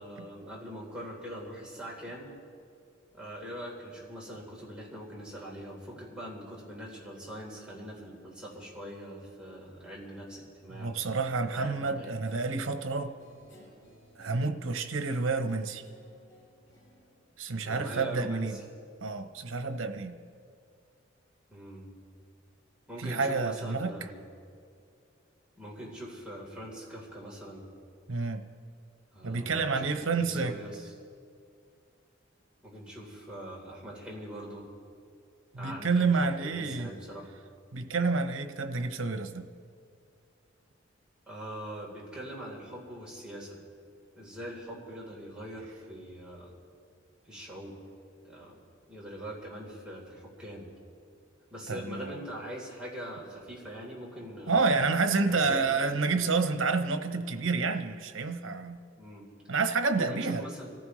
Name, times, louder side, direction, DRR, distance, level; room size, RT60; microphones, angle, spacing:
voice 1, 0.0-2.3 3.1-10.9 11.5-12.2 17.6-18.6 21.5-21.9 22.9-24.2 25.6-27.6 29.1-30.9 32.6-34.7 35.5-36.1 36.4-37.3 41.3-43.6 44.1-46.6 47.2-47.8 48.2-48.6 48.9-50.7 51.5-54.7 55.3-55.8 59.0-59.2 60.0-60.7, equal, 5° right, -5 dB, 3.6 m, -42 dB
voice 2, 10.7-13.1 14.2-15.8 17.4-18.6 19.0-20.1 23.0-23.9 28.1-28.4 29.2-30.5 35.5-36.9 37.7-39.5 51.7-52.1 54.5-58.8 59.5-60.4, right 4 dB, 85° right, 9 dB, 0.9 m, -29 dB
Guitar, 12.2-18.1, equal, 55° left, 5.1 m, -58 dB
26.5 x 14.5 x 3.2 m, 2.3 s
head